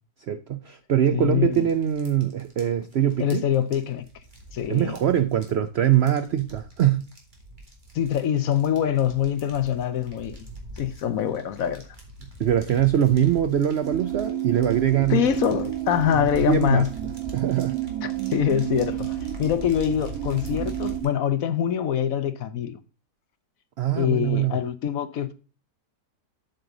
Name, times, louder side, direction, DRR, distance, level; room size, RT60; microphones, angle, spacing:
voice 1, 0.3-3.5 4.7-7.0 12.4-15.2 16.1-16.8 17.3-17.9 23.8-24.6, right 10 dB, 85° right, 0.5 m, -23 dB
voice 2, 1.1-1.6 3.2-4.0 4.5-5.0 7.9-10.5 10.8-11.8 15.1-16.9 18.0-22.8 23.9-25.3, left 9 dB, 60° left, 1.1 m, -24 dB
sound 1, 1.5-21.0, right 1 dB, 30° right, 2.2 m, -42 dB
sound 2, 13.8-21.0, right 14 dB, 60° right, 1.5 m, -31 dB
7.9 x 6.7 x 3.8 m
omnidirectional pair, 1.8 m